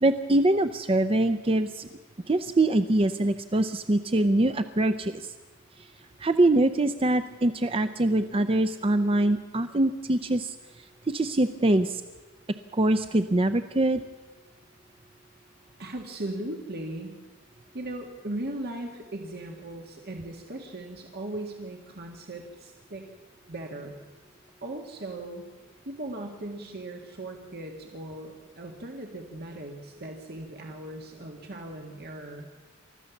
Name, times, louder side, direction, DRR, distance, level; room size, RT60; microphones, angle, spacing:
voice 1, 0.0-1.9 2.3-5.3 5.8-5.9 6.2-12.0 12.7-14.0, right 1 dB, 25° right, 10 dB, 0.6 m, -24 dB
voice 2, 15.8-17.1 17.7-23.0 23.5-24.0 24.6-25.4 25.9-32.5, right 1 dB, 50° right, 2 dB, 1.9 m, -38 dB
29.0 x 14.0 x 7.1 m, 1.3 s
head